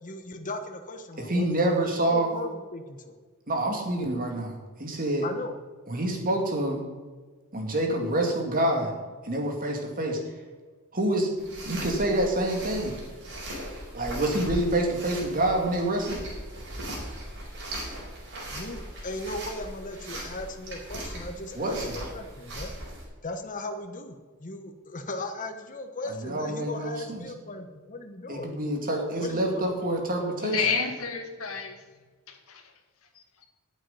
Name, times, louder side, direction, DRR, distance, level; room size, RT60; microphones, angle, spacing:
voice 1, 0.0-1.5 2.1-3.2 5.2-5.5 18.5-22.7 23.2-28.5 29.2-29.7, left 2 dB, 40° left, 6 dB, 1.0 m, -37 dB
voice 2, 1.2-2.3 3.5-5.3 5.9-6.8 7.5-8.9 9.2-10.2 10.9-11.3 11.6-13.0 13.9-16.2 21.6-21.9 26.1-27.3 28.3-30.6, right 1 dB, 40° right, 1 dB, 2.4 m, -27 dB
sound 1, 11.4-23.0, right 1 dB, 55° right, 4.7 m, -39 dB
voice 3, 30.4-31.9 32.3-32.7 33.1-33.5, left 6 dB, 75° left, 4 dB, 1.9 m, -30 dB
9.6 x 8.0 x 9.0 m, 1.4 s
head